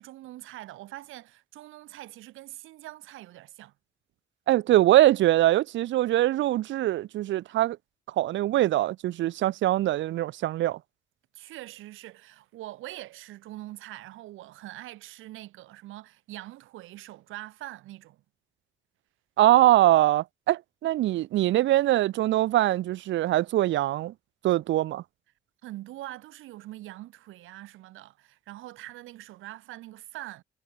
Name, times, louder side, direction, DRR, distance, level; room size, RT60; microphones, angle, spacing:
voice 1, 0.0-3.7 11.3-18.2 25.6-30.4, right 16 dB, 90° right, 2.0 m, -43 dB
voice 2, 4.5-7.8 8.2-10.8 19.4-24.1 24.4-25.0, right 14 dB, 70° right, 0.5 m, -23 dB
cardioid pair, 90°, 20 cm